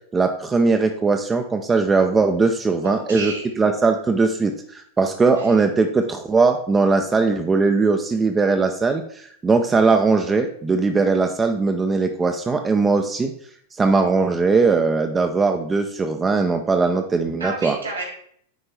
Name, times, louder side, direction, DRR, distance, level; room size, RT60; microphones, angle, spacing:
voice 1, 0.1-3.3 3.6-13.3 13.8-17.8, right 4 dB, 15° right, 5 dB, 0.6 m, -20 dB
voice 2, 2.8-3.4 5.4-5.5 17.4-18.0, right 2 dB, 75° right, 0 dB, 2.7 m, -30 dB
9.9 x 4.4 x 3.3 m, 0.63 s
figure-of-eight pair, 90°, 0 cm